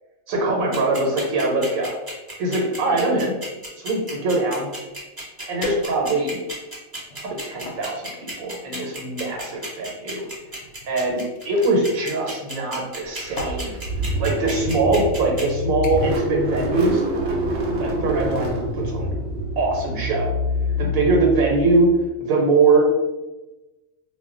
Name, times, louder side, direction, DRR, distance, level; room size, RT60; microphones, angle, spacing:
voice 1, 0.3-1.9 2.4-3.3 3.8-4.7 5.5-6.4 7.2-10.3 10.9-13.8 14.2-17.0 17.8-19.1 19.6-20.3 20.8-21.9 22.2-22.8, right 2 dB, 80° right, -1 dB, 1.0 m, -22 dB
sound 1, 0.7-15.4, right 1 dB, 25° right, 0.5 m, -33 dB
sound 2, 5.6-6.4 7.0-7.9 8.8-11.7 12.8-13.0 13.4-13.7 14.6-14.7 15.1-15.4 15.8-16.2 16.6-16.9 17.3-17.4, left 2 dB, 65° left, 0.8 m, -37 dB
Car / Engine starting, 13.2-22.0, equal, 65° right, 0.7 m, -26 dB
2.2 x 2.1 x 3.6 m, 1.1 s
omnidirectional pair, 1.4 m